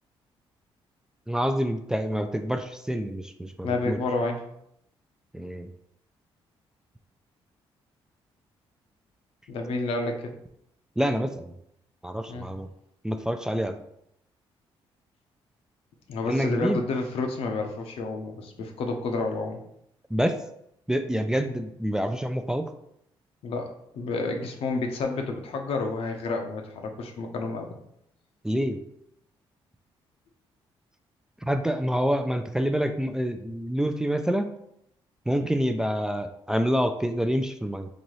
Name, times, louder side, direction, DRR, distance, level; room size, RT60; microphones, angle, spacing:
voice 1, 1.3-4.0 5.3-5.7 11.0-11.5 12.0-12.7 13.0-13.8 16.3-16.8 20.1-20.4 20.9-22.7 28.4-28.8 31.5-34.5 35.3-37.9, equal, 5° right, 6 dB, 0.3 m, -27 dB
voice 2, 3.6-4.4 9.5-10.3 12.3-12.5 16.1-19.6 23.4-27.7, left 3 dB, 70° left, 3 dB, 0.7 m, -30 dB
4.0 x 2.6 x 3.1 m, 0.75 s
cardioid pair, 80°, 10 cm